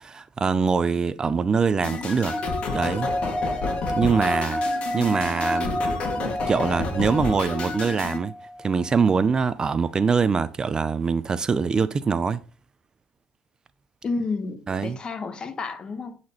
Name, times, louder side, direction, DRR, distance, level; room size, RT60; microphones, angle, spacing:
voice 1, 0.0-2.4 2.7-3.1 4.0-4.6 4.9-5.9 6.2-8.3 8.6-12.4 14.7-15.0, right 5 dB, 30° right, 0.4 m, -23 dB
sound 1, 1.8-8.2, left 4 dB, 50° left, 1.7 m, -30 dB
sound 2, 2.3-8.9, equal, ahead, 2.0 m, -30 dB
voice 2, 14.0-16.2, left 4 dB, 35° left, 1.0 m, -31 dB
9.4 x 4.1 x 2.9 m
supercardioid pair, 80°, 2 cm